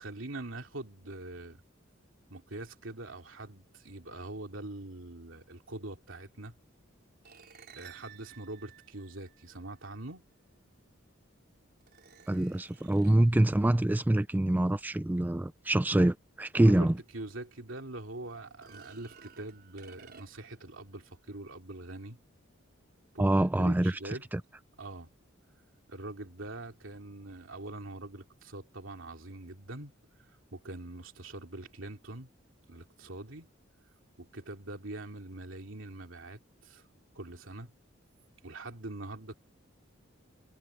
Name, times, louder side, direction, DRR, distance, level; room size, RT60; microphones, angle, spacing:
voice 1, 0.0-1.6 2.3-6.5 7.7-10.3 16.6-16.9 17.1-22.2 23.1-24.2 24.8-25.1 25.9-29.9 30.5-32.3 32.7-33.5 34.2-36.9 37.1-37.7 38.4-39.3, right 2 dB, 70° right, 3.0 m, -43 dB
sound 1, 7.2-9.7 10.9-11.0 11.8-13.4 16.6-16.7 17.2-17.3 18.5-20.6, right 6 dB, 55° right, 5.1 m, -55 dB
voice 2, 12.3-17.0 23.2-24.0 24.3-24.4, right 1 dB, 10° right, 0.3 m, -25 dB
head